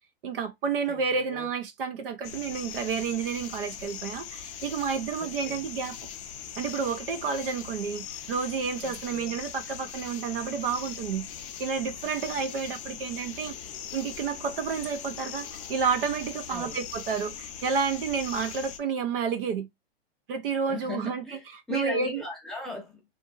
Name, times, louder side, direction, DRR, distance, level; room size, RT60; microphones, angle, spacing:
voice 1, 0.2-6.0 6.6-13.5 13.9-19.7 20.3-21.4 21.7-22.2, right 5 dB, 60° right, 0.7 m, -30 dB
voice 2, 0.9-1.5 5.2-5.6 8.8-9.4 16.5-16.8 20.7-23.0, left 3 dB, ahead, 0.9 m, -38 dB
sound 1, 2.2-18.8, left 8 dB, 30° left, 0.5 m, -40 dB
2.7 x 2.6 x 2.4 m
hypercardioid pair, 145°, 32 cm